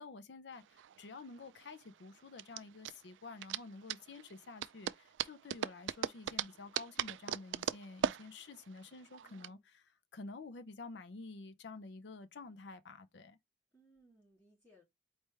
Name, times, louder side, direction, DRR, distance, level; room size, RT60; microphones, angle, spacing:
voice 1, 0.0-13.4, left 3 dB, 75° left, 0.5 m, -50 dB
sound 1, 0.6-9.5, right 9 dB, 90° right, 0.3 m, -40 dB
voice 2, 9.2-9.6 13.7-14.8, right 1 dB, 5° left, 3.1 m, -66 dB
4.3 x 3.3 x 3.3 m
head